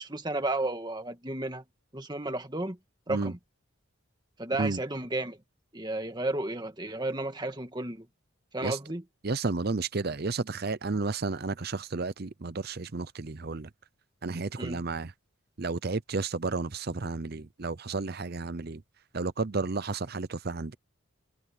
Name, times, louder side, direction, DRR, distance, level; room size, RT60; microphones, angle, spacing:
voice 1, 0.0-1.6 1.9-2.8 3.1-3.4 4.4-5.4 5.7-8.1 8.5-9.0 14.6-14.8, right 2 dB, 20° right, 1.9 m, -33 dB
voice 2, 9.2-13.7 14.2-15.1 15.6-18.8 19.1-20.8, right 3 dB, 45° right, 0.7 m, -32 dB
head